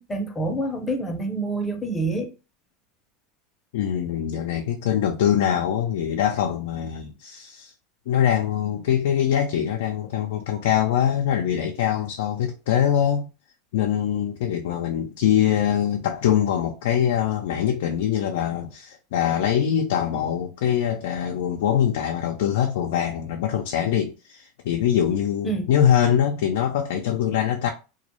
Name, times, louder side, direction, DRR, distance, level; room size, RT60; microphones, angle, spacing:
voice 1, 0.1-2.3 25.4-25.7, right 2 dB, 15° left, 0.6 m, -27 dB
voice 2, 3.7-7.7 8.1-13.3 13.7-27.7, left 9 dB, 80° left, 0.3 m, -23 dB
2.2 x 2.0 x 2.9 m
supercardioid pair, 125°, 0 cm